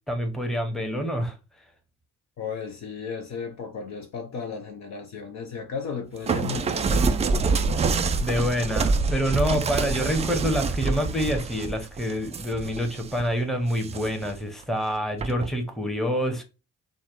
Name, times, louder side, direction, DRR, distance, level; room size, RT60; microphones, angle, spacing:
voice 1, 0.1-1.3 8.2-16.4, equal, ahead, 0.9 m, -27 dB
voice 2, 2.4-7.8, left 6 dB, 40° left, 0.6 m, -35 dB
sound 1, 6.3-13.2 13.7-14.3 15.2-15.5, right 4 dB, 20° right, 0.3 m, -26 dB
4.7 x 2.1 x 3.6 m
figure-of-eight pair, 40°, 41 cm